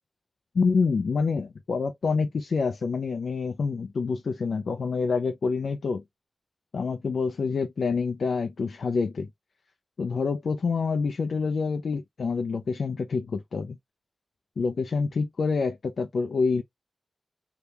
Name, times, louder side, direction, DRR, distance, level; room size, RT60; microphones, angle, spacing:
voice 1, 0.5-6.0 6.7-9.3 10.0-13.8 14.6-16.6, left 4 dB, 80° left, 0.4 m, -27 dB
3.5 x 2.2 x 2.7 m
cardioid pair, 45°, 0 cm